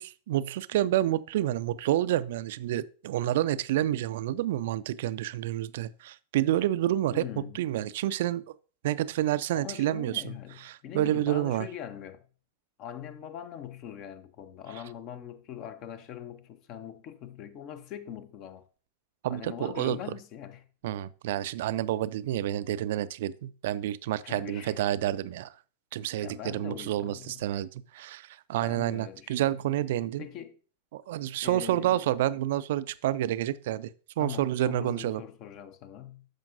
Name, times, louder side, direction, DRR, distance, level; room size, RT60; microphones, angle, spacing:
voice 1, 0.0-7.2 7.5-8.4 8.8-11.7 19.2-20.0 20.8-25.5 25.9-30.3 30.9-33.9 34.2-35.2, right 13 dB, 55° right, 0.4 m, -29 dB
voice 2, 7.1-7.6 9.5-12.3 12.8-18.6 19.3-20.7 24.2-24.9 26.2-27.4 28.6-29.6 30.2-30.5 31.4-32.0 34.2-36.3, left 10 dB, 40° left, 0.7 m, -42 dB
13.0 x 5.1 x 2.5 m
figure-of-eight pair, 90°, 0 cm